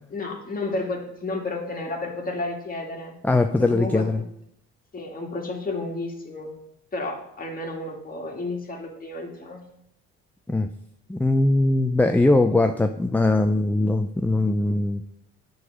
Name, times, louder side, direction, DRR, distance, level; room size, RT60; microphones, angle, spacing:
voice 1, 0.1-3.1 3.6-4.2 4.9-6.5 6.9-9.7, left 2 dB, 30° left, 0 dB, 2.0 m, -31 dB
voice 2, 3.2-4.2 10.5-10.7 11.1-15.0, left 2 dB, 5° left, 7 dB, 0.4 m, -21 dB
8.0 x 4.0 x 6.0 m, 0.76 s
cardioid pair, 90°, 30 cm